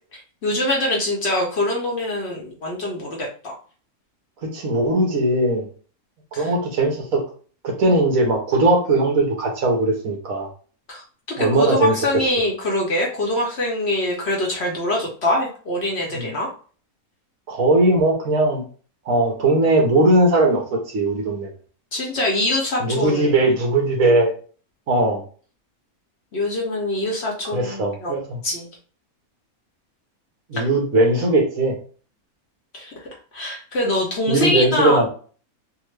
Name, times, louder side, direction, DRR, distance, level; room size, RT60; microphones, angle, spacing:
voice 1, 0.1-3.5 6.3-6.5 10.9-11.0 11.4-16.5 21.9-23.3 26.3-28.1 28.4-28.7 30.5-30.6 32.7-33.0 33.3-35.0, left 1 dB, 55° left, -1 dB, 0.9 m, -24 dB
voice 2, 4.4-5.7 6.4-7.2 7.6-10.5 11.4-12.2 16.1-16.3 17.5-18.6 19.1-20.6 20.9-21.5 22.8-24.3 24.9-25.2 27.5-28.4 30.5-31.7 34.3-35.1, right 2 dB, 65° right, 1 dB, 1.3 m, -19 dB
3.5 x 2.1 x 3.1 m, 0.41 s
omnidirectional pair, 1.6 m